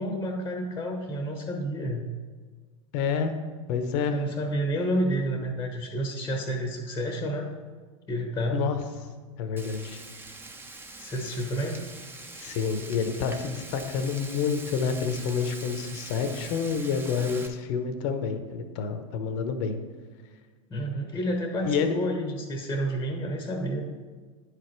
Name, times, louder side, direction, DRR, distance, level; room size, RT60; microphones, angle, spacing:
voice 1, 0.0-2.1 4.1-7.5 8.1-8.6 11.0-11.8 20.7-23.8, right 1 dB, 15° left, 4 dB, 0.9 m, -30 dB
voice 2, 2.9-3.3 3.7-4.2 8.5-8.8 9.4-10.0 12.3-19.7 21.6-21.9, left 6 dB, 50° left, 8 dB, 0.8 m, -28 dB
Frying (food), 9.6-17.5, right 2 dB, 10° right, 0.8 m, -43 dB
10.0 x 5.0 x 4.5 m, 1.5 s
hypercardioid pair, 90°, 18 cm